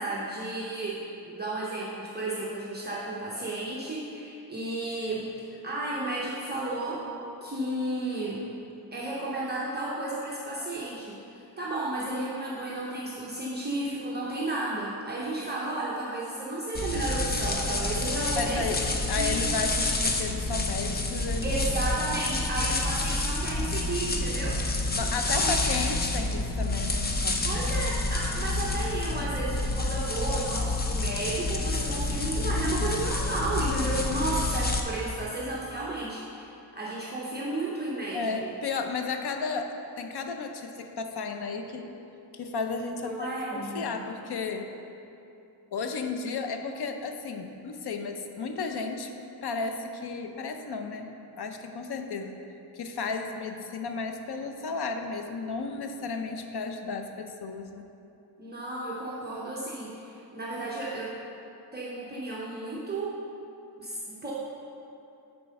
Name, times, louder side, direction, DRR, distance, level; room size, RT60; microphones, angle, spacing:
voice 1, 0.0-5.2 5.6-7.0 7.4-8.4 8.9-18.8 19.2-19.4 21.4-24.6 25.2-25.6 27.4-38.5 43.0-44.0 58.4-61.1 61.7-63.2 63.8-64.3, right 2 dB, 25° right, -6 dB, 0.8 m, -33 dB
sound 1, 16.7-34.8, left 2 dB, 25° left, 0.5 m, -28 dB
voice 2, 18.3-18.8 19.1-21.5 24.9-27.5 38.1-41.9 42.3-44.7 45.7-49.1 49.4-51.1 51.4-52.4 52.7-57.8, left 4 dB, 70° left, 6 dB, 0.7 m, -33 dB
7.1 x 4.5 x 6.4 m, 2.8 s
wide cardioid pair, 165°, 40 cm